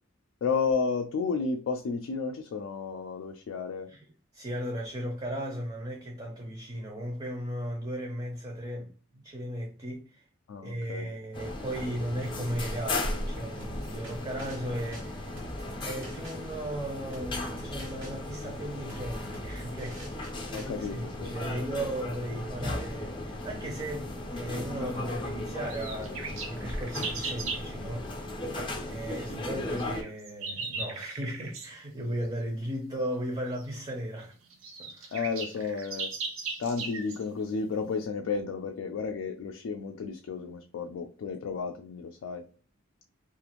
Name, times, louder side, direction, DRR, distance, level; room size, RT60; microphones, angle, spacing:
voice 1, 0.4-3.9 10.5-11.1 20.5-21.3 35.1-36.1 36.6-42.5, left 5 dB, 80° left, 0.3 m, -32 dB
voice 2, 4.3-10.2 10.6-15.4 15.8-34.3 34.8-35.1, right 1 dB, 30° right, 0.5 m, -36 dB
sound 1, 11.3-30.0, left 1 dB, 25° left, 0.5 m, -36 dB
sound 2, 13.6-20.7, equal, 75° right, 1.1 m, -47 dB
sound 3, 25.7-27.7 29.8-31.7 33.6-33.7 34.2-34.3 34.5-37.2, right 4 dB, 90° right, 0.7 m, -37 dB
2.4 x 2.4 x 2.9 m
head